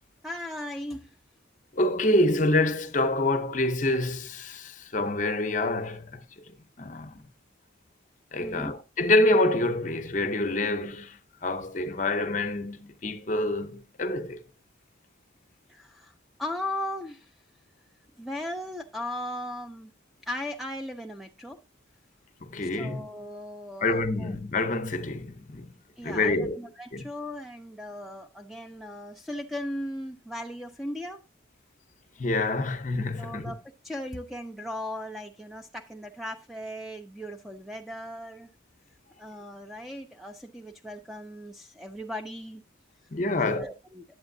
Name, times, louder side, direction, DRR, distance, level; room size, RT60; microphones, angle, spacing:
voice 1, 0.2-1.2 8.4-8.7 15.7-16.1 16.4-17.3 18.2-19.9 20.2-21.6 22.6-24.3 26.0-31.2 33.2-38.5 39.2-42.6 43.4-44.0, left 1 dB, ahead, 0.4 m, -37 dB
voice 2, 1.7-6.2 6.8-7.2 8.3-14.4 22.4-23.0 23.8-25.7 26.0-26.6 26.9-27.0 32.2-33.5 43.1-43.7, left 2 dB, 40° left, 0.7 m, -27 dB
8.6 x 8.0 x 2.6 m
head